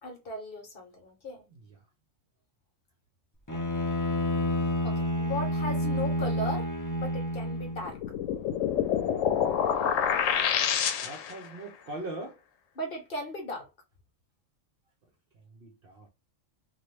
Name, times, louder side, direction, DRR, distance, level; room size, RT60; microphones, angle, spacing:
voice 1, 0.0-1.4 4.8-8.0 12.8-13.7, left 1 dB, 50° left, 1.0 m, -37 dB
voice 2, 1.5-1.8 11.0-12.4 15.5-16.1, right 2 dB, 55° right, 0.7 m, -41 dB
Bowed string instrument, 3.5-7.9, equal, 25° left, 0.4 m, -29 dB
sound 1, 7.8-11.5, left 8 dB, 80° left, 0.9 m, -27 dB
2.9 x 2.4 x 3.1 m
omnidirectional pair, 1.3 m